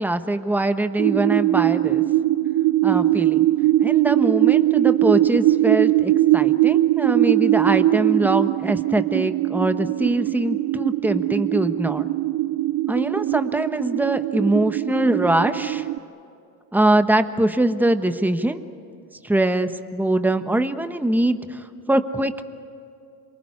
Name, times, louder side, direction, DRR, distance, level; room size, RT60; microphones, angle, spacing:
voice 1, 0.0-2.0 2.8-3.5 3.8-12.1 12.9-15.8 16.7-18.6 19.2-22.4, right 1 dB, 5° right, 9 dB, 1.2 m, -22 dB
sound 1, 1.0-16.0, right 15 dB, 55° right, 0.6 m, -21 dB
27.5 x 19.5 x 9.8 m, 2.5 s
supercardioid pair, 70°, 44 cm